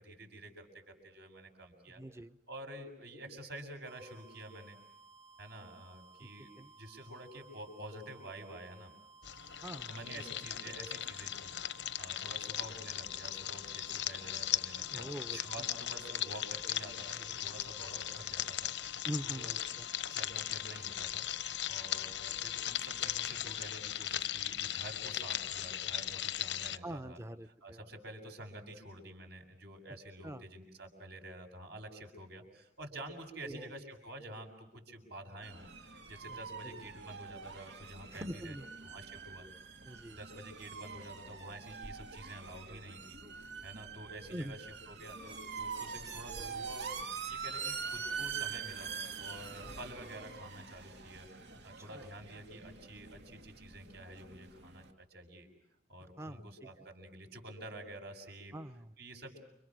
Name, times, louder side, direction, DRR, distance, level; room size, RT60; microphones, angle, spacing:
voice 1, 0.0-2.0 2.5-4.8 5.4-6.5 6.8-8.9 9.9-18.9 19.2-19.5 20.1-21.2 21.7-27.2 27.5-35.7 36.1-38.6 38.8-39.5 40.1-43.2 43.6-46.9 47.3-48.9 49.2-55.5 55.9-58.6 59.0-59.4, right 1 dB, 65° right, 4 dB, 7.3 m, -49 dB
voice 2, 1.9-2.4 6.2-6.3 6.6-6.7 9.6-9.9 14.9-15.4 19.0-19.8 26.8-27.8 30.2-30.4 33.4-33.7 36.3-36.4 36.6-36.9 38.1-38.7 39.8-40.2 44.3-44.5 51.9-52.1 56.2-56.5 58.5-58.9, equal, 15° right, 11 dB, 0.9 m, -43 dB
sound 1, 3.9-23.4, right 4 dB, 35° right, 3.2 m, -59 dB
sound 2, 9.2-26.8, left 12 dB, 90° left, 0.9 m, -38 dB
sound 3, 35.4-54.9, right 5 dB, 85° right, 2.4 m, -44 dB
30.0 x 27.0 x 6.3 m, 0.82 s
head